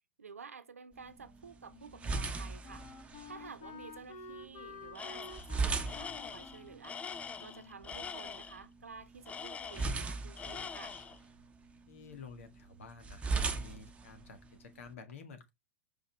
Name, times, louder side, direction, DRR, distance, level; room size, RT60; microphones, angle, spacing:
voice 1, 0.2-2.8 3.3-10.9, right 5 dB, 75° right, 0.9 m, -51 dB
sound 1, 0.9-14.9, right 4 dB, 15° right, 1.0 m, -40 dB
Wind instrument woodwind instrument, 1.2-8.5, left 4 dB, 35° left, 2.1 m, -52 dB
Tools, 5.0-5.5 5.9-8.6 9.3-10.1 10.4-11.2, left 6 dB, 15° left, 0.5 m, -44 dB
voice 2, 11.9-15.5, left 5 dB, 65° left, 1.7 m, -51 dB
5.4 x 5.3 x 3.3 m
figure-of-eight pair, 95°, 8 cm